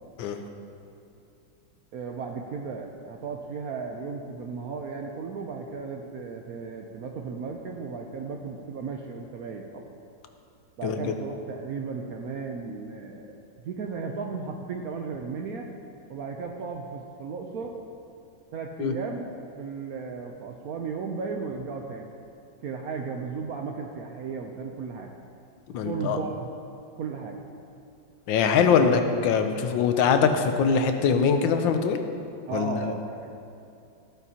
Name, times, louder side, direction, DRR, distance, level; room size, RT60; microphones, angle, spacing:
voice 1, 1.9-9.8 10.8-13.4 13.6-15.7 16.1-17.8 18.5-19.3 19.6-22.1 22.6-25.1 25.8-26.5 27.0-27.4 32.5-33.3, right 5 dB, 70° right, 2 dB, 0.9 m, -35 dB
voice 2, 25.7-26.2 28.3-32.0 32.5-32.9, left 6 dB, 80° left, 7 dB, 1.4 m, -22 dB
14.0 x 9.1 x 2.8 m, 2.6 s
omnidirectional pair, 2.1 m